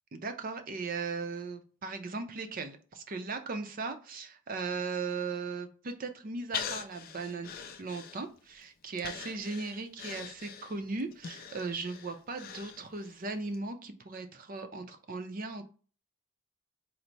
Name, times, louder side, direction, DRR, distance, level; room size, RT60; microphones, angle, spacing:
voice 1, 0.1-7.5 7.8-15.6, right 4 dB, 40° right, 7 dB, 0.5 m, -37 dB
Breathing, 6.5-8.5 9.0-13.2 13.5-13.6, left 7 dB, 40° left, 0.4 m, -42 dB
4.4 x 2.0 x 3.9 m, 0.39 s
head